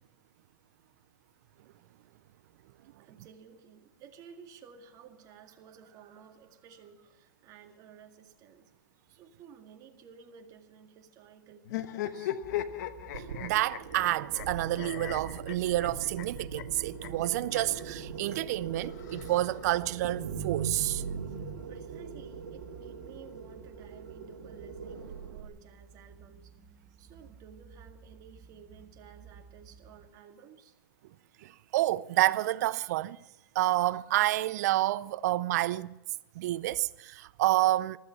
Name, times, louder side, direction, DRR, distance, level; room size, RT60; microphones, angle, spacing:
voice 1, 3.0-8.7 9.1-12.4 21.4-30.8, right 7 dB, 35° right, 2.0 m, -54 dB
sound 1, 11.6-17.8 18.8-19.9, left 12 dB, 60° left, 1.1 m, -38 dB
sound 2, 12.4-30.2, right 5 dB, 20° right, 0.9 m, -54 dB
sound 3, 13.1-25.5, right 6 dB, 70° right, 2.5 m, -41 dB
voice 2, 13.4-21.0 31.4-33.2 33.5-36.0 36.4-38.0, right 16 dB, 55° right, 0.5 m, -29 dB
15.0 x 13.5 x 7.1 m
hypercardioid pair, 125°, 11 cm